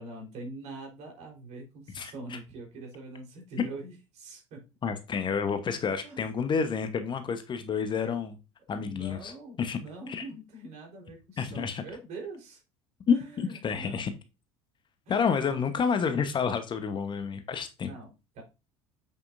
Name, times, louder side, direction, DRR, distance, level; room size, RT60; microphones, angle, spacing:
voice 1, 0.0-4.7 6.0-6.5 7.6-8.3 8.7-12.6 13.1-14.1 15.1-15.6 17.8-18.4, right 2 dB, 50° right, 1 dB, 4.0 m, -44 dB
voice 2, 4.8-8.4 8.7-9.3 9.6-9.8 10.1-10.2 11.4-11.8 13.1-14.1 15.1-17.9, left 6 dB, 30° left, 9 dB, 1.1 m, -29 dB
7.9 x 6.8 x 2.6 m, 0.27 s
figure-of-eight pair, 65°, 15 cm